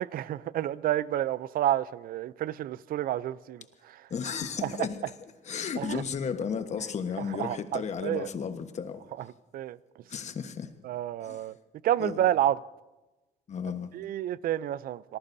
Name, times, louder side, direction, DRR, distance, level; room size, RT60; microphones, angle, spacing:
voice 1, 0.0-3.6 4.6-4.7 5.8-6.0 7.4-8.3 9.5-9.8 10.8-11.5 11.8-12.6 13.9-15.2, right 12 dB, 60° right, 0.5 m, -29 dB
voice 2, 4.1-5.1 5.4-9.0 10.1-10.7 11.2-11.4 12.0-12.2 13.5-13.9, left 6 dB, 45° left, 1.3 m, -34 dB
27.0 x 19.0 x 2.7 m
cardioid pair, 110°, 17 cm